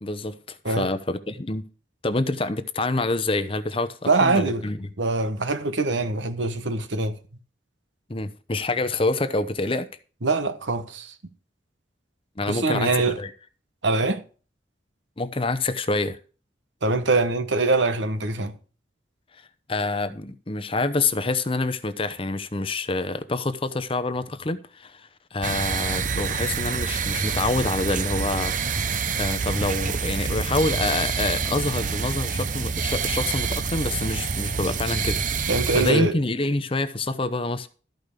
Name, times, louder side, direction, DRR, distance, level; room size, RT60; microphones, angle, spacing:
voice 1, 0.0-1.6 2.0-4.9 8.1-9.9 12.4-12.9 13.2-13.3 15.2-16.2 19.7-37.7, left 2 dB, 30° left, 0.8 m, -27 dB
voice 2, 4.1-4.7 5.0-7.2 10.2-11.1 12.4-13.2 13.8-14.2 16.8-18.5 35.5-36.2, right 3 dB, 80° right, 1.2 m, -23 dB
sound 1, 25.4-35.9, right 5 dB, 45° right, 0.7 m, -27 dB
13.5 x 5.3 x 6.6 m
head